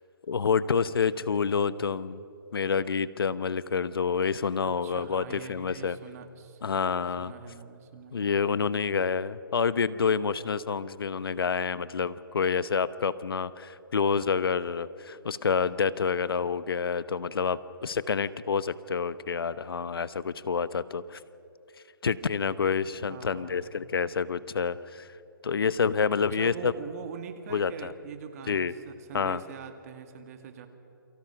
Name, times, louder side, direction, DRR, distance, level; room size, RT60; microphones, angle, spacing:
voice 1, 0.3-2.2 2.5-6.0 6.6-7.3 8.1-21.2 22.0-25.1 25.4-26.7 27.5-27.9 28.5-28.7 29.1-29.4, left 6 dB, 80° left, 16 dB, 1.0 m, -28 dB
voice 2, 4.6-6.6 7.2-8.2 23.1-23.7 26.3-30.7, right 7 dB, 40° right, 7 dB, 2.2 m, -43 dB
28.5 x 23.5 x 5.9 m, 2.8 s
hypercardioid pair, 150°, 12 cm